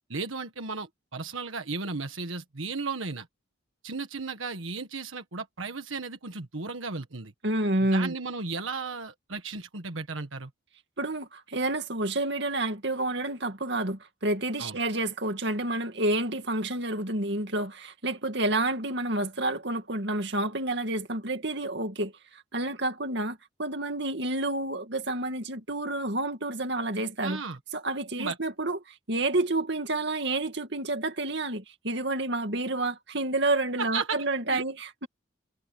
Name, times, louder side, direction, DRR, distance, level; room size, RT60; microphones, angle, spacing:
voice 1, 0.1-3.3 3.8-7.3 7.9-10.5 14.6-14.8 27.2-27.6 28.2-28.4 33.8-34.2 34.5-34.6, right 4 dB, 85° right, 1.6 m, -35 dB
voice 2, 7.4-8.1 11.0-27.4 27.7-35.1, right 2 dB, 60° right, 2.4 m, -29 dB
head